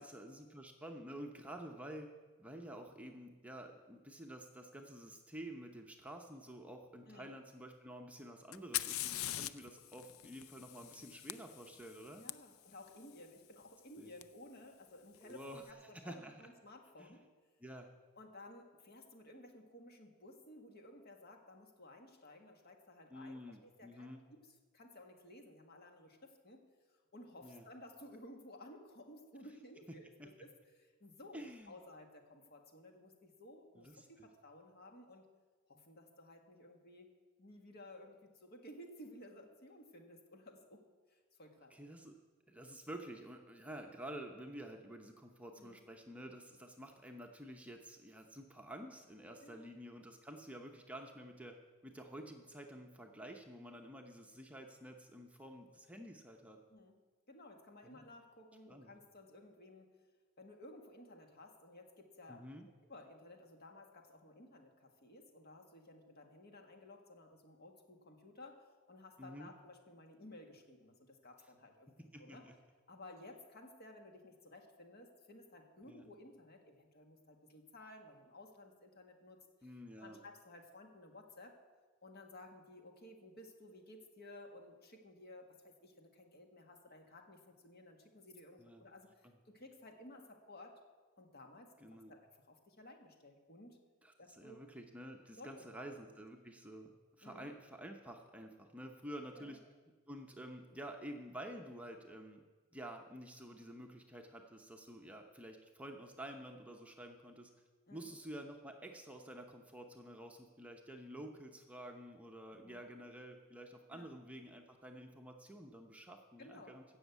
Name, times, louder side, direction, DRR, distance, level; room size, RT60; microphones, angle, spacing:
voice 1, 0.0-2.1 2.4-12.2 14.0-14.1 15.2-16.3 17.0-17.2 17.6-17.9 23.1-24.2 27.4-27.6 30.2-30.3 31.3-31.8 33.8-34.3 41.7-42.1 42.5-51.6 51.8-56.6 57.8-58.1 58.7-58.9 62.3-62.7 69.2-69.5 72.0-72.5 75.9-76.1 79.6-80.2 88.6-88.9 89.2-89.3 91.8-92.1 94.0-99.6 100.1-102.4 102.7-107.5 107.9-116.8, right 1 dB, 5° right, 2 dB, 0.8 m, -50 dB
Fire, 8.5-12.3 14.2-14.3 15.1-15.6, left 14 dB, 70° left, 0.4 m, -42 dB
voice 2, 12.2-17.2 18.2-24.4 24.7-30.5 30.8-35.3 35.7-37.1 37.4-40.8 41.1-41.7 45.6-45.8 49.4-49.7 56.7-56.9 57.3-60.0 60.4-62.5 62.9-68.6 68.9-72.5 72.9-79.4 80.0-81.6 82.0-90.8 91.2-93.8 94.2-94.7 95.4-96.0 97.2-97.5 99.3-99.6 107.9-108.1 112.5-112.9 113.9-114.1 116.4-116.7, left 1 dB, 50° left, 3 dB, 1.7 m, -56 dB
15.5 x 6.4 x 8.1 m, 1.4 s
head